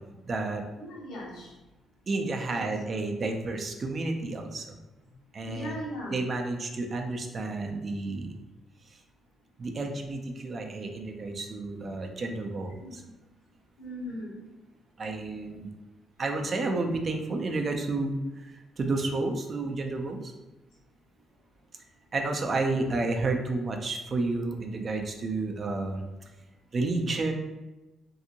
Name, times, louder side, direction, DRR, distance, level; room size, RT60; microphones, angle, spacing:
voice 1, 0.3-0.6 2.1-4.8 5.3-8.3 8.9-9.0 9.6-13.0 15.0-15.7 16.2-20.3 22.1-26.1 26.7-27.3, right 3 dB, 40° right, 3 dB, 0.4 m, -31 dB
voice 2, 0.8-1.5 2.5-2.6 5.4-6.2 12.8-12.9 13.8-14.4, equal, 90° left, -4 dB, 0.9 m, -38 dB
2.7 x 2.5 x 2.7 m, 1.1 s
cardioid pair, 90°, 0 cm